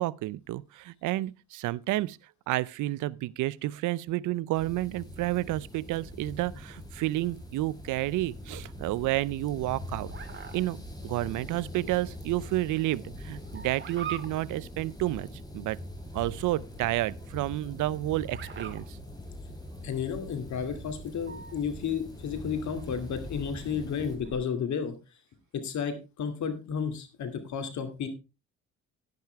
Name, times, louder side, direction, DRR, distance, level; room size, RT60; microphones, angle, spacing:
voice 1, 0.0-2.2 2.5-10.1 10.5-15.3 15.5-15.8 16.1-19.0, right 16 dB, 80° right, 0.5 m, -30 dB
sound 1, 4.5-24.2, left 1 dB, 15° left, 3.9 m, -43 dB
sound 2, 6.0-24.4, right 7 dB, 40° right, 2.0 m, -48 dB
voice 2, 19.8-24.9 25.6-28.1, left 7 dB, 70° left, 2.4 m, -32 dB
10.5 x 10.5 x 3.4 m
cardioid pair, 90°, 30 cm